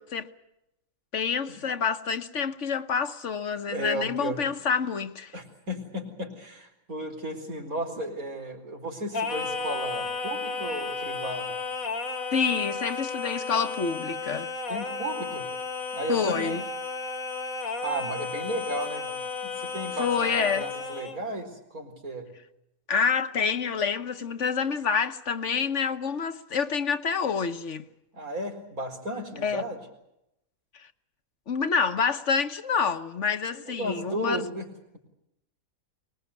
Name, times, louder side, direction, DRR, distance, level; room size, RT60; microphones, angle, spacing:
voice 1, 1.1-5.3 12.3-14.5 16.1-16.6 20.0-20.7 22.9-27.8 29.4-29.6 30.7-30.9 31.5-34.5, left 6 dB, 60° left, 1.4 m, -27 dB
voice 2, 3.5-4.5 5.3-11.5 14.7-15.5 15.9-16.6 17.8-19.1 19.4-22.3 28.1-29.8 33.5-35.0, right 1 dB, 90° right, 4.8 m, -34 dB
Singing, 9.1-21.2, left 4 dB, 75° left, 2.1 m, -33 dB
24.0 x 21.0 x 8.3 m
omnidirectional pair, 1.5 m